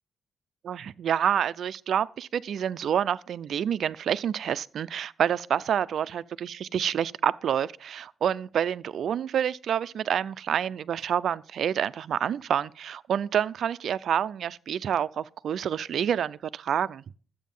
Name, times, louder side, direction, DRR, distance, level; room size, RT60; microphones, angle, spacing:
voice 1, 0.6-17.0, right 9 dB, 70° right, 0.5 m, -28 dB
12.5 x 8.3 x 5.4 m
cardioid pair, 115°, 0 cm